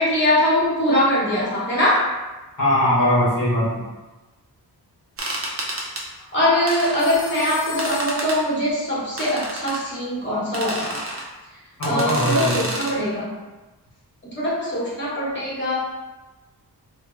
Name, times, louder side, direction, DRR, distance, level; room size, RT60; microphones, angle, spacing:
voice 1, 0.0-2.1 6.3-11.0 11.8-13.3 14.2-15.8, left 1 dB, 30° left, -8 dB, 1.1 m, -22 dB
voice 2, 2.6-3.8 11.8-12.6, left 1 dB, 55° left, -9 dB, 0.9 m, -20 dB
sound 1, 5.2-6.0 6.7-7.2 7.8-8.4 9.2-9.8 10.5-11.2 11.8-12.9, right 1 dB, 35° right, 0.5 m, -30 dB
Telephone, 7.0-9.1, left 4 dB, 20° right, 0.9 m, -38 dB
3.5 x 2.1 x 3.1 m, 1.1 s
wide cardioid pair, 150°, 39 cm